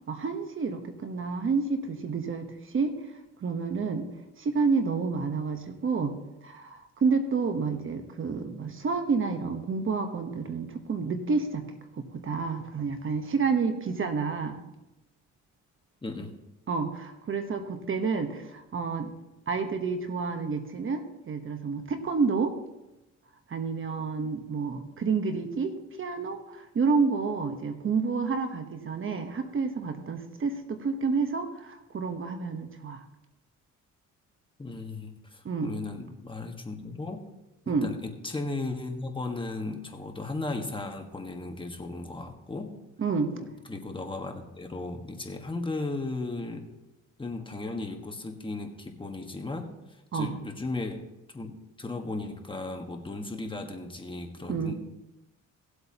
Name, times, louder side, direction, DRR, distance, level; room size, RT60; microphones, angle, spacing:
voice 1, 0.1-3.1 3.4-4.1 4.4-6.2 6.4-11.7 11.9-14.6 16.7-19.1 19.5-22.5 23.5-33.0 35.4-35.7 37.7-37.9 43.0-43.3 50.1-50.4 54.5-54.8, right 4 dB, 45° right, 7 dB, 1.1 m, -29 dB
voice 2, 16.0-16.4 34.6-37.3 37.7-42.7 43.3-46.7 47.2-49.7 50.1-51.1 51.3-54.8, left 2 dB, 15° left, 3 dB, 1.4 m, -36 dB
18.0 x 8.1 x 2.9 m, 0.96 s
cardioid pair, 90°, 30 cm